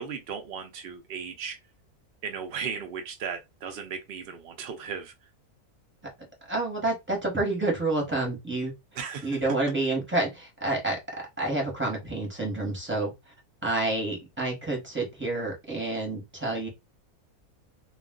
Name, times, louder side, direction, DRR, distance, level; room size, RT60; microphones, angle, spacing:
voice 1, 0.0-1.6 2.2-5.1 8.9-9.6, right 6 dB, 80° right, 0.5 m, -36 dB
voice 2, 6.5-8.7 9.2-11.0 11.4-13.1 13.6-16.7, right 2 dB, 10° right, 0.8 m, -28 dB
2.3 x 2.2 x 3.6 m
omnidirectional pair, 1.6 m